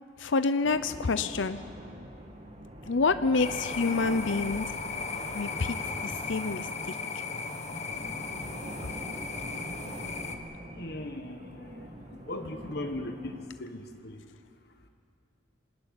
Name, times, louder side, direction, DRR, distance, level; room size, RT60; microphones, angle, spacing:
voice 1, 0.2-1.6 2.9-4.7 5.3-7.2 9.8-10.0, left 4 dB, 85° left, 11 dB, 0.7 m, -28 dB
sound 1, 0.6-13.5, right 1 dB, 35° right, 1.8 m, -45 dB
sound 2, 3.4-10.4, left 4 dB, 35° left, 1.4 m, -36 dB
voice 2, 10.8-11.9 12.3-14.2, left 1 dB, 55° left, 6 dB, 1.4 m, -38 dB
26.0 x 14.5 x 9.9 m, 2.4 s
head